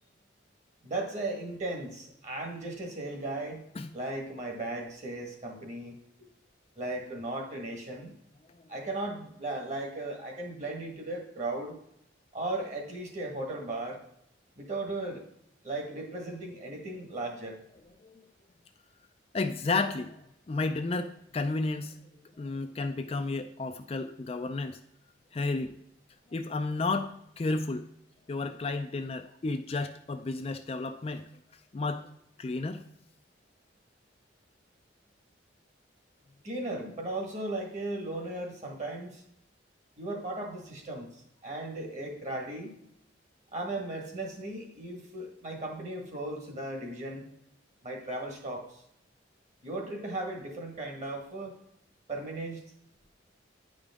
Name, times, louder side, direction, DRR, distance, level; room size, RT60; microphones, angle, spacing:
voice 1, 0.8-3.6 3.9-6.0 6.8-8.1 8.7-11.7 12.3-14.0 14.6-15.2 15.6-17.6 36.4-39.2 40.0-42.8 43.5-47.2 47.8-48.8 49.6-51.5 52.1-52.6, right 2 dB, 35° right, 1 dB, 1.5 m, -36 dB
voice 2, 19.3-22.0 22.4-24.8 25.3-25.8 26.3-27.8 28.3-31.3 31.7-32.1 32.4-32.8, left 3 dB, 30° left, 7 dB, 0.4 m, -32 dB
9.9 x 5.1 x 3.6 m, 0.77 s
head